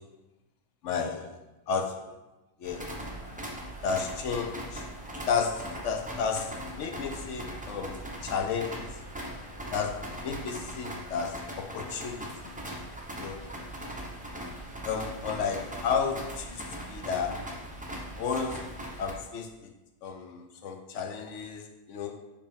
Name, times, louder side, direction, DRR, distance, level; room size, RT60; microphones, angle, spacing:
voice 1, 0.8-1.4 1.7-2.2 2.6-2.9 3.8-4.9 5.3-8.9 9.7-12.5 13.1-13.5 14.8-17.5 18.1-19.7 20.0-22.2, left 6 dB, 60° left, 4 dB, 0.9 m, -33 dB
sound 1, 2.6-19.1, right 1 dB, 10° right, 0.4 m, -40 dB
4.9 x 4.8 x 5.2 m, 1.1 s
omnidirectional pair, 1.8 m